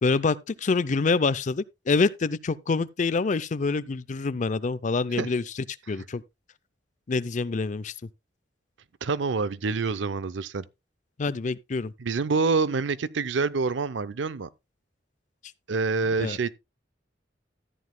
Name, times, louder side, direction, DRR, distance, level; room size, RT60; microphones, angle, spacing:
voice 1, 0.0-6.2 7.1-7.9 11.2-11.9 16.2-16.4, left 4 dB, 45° left, 0.5 m, -26 dB
voice 2, 9.0-10.6 12.0-14.5 15.7-16.6, right 4 dB, 85° right, 0.6 m, -26 dB
13.5 x 9.4 x 2.2 m
head